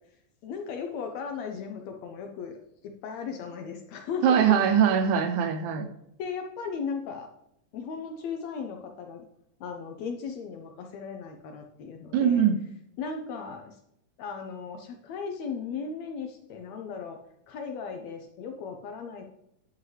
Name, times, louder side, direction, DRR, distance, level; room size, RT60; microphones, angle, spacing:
voice 1, 0.4-4.6 6.2-7.3 7.7-9.3 9.6-12.5 13.0-13.8 14.2-17.2 17.5-19.2, left 5 dB, 75° left, 4 dB, 1.7 m, -36 dB
voice 2, 4.2-5.9 12.1-12.6, right 8 dB, 80° right, 8 dB, 2.0 m, -22 dB
9.4 x 5.9 x 3.2 m, 0.79 s
omnidirectional pair, 3.7 m